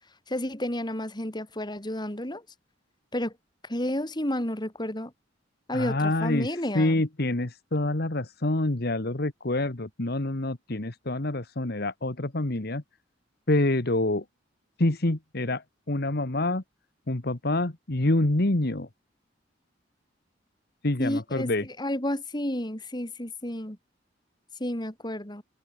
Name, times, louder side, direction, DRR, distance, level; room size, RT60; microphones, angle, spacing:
voice 1, 0.3-2.4 3.1-3.3 3.6-5.1 5.7-7.0 21.0-21.5 21.8-23.8 24.6-25.4, left 1 dB, 25° left, 3.4 m, -31 dB
voice 2, 5.7-6.5 6.7-12.8 13.5-14.2 14.8-16.6 17.1-18.9 20.8-21.6, left 2 dB, 60° left, 1.6 m, -26 dB
head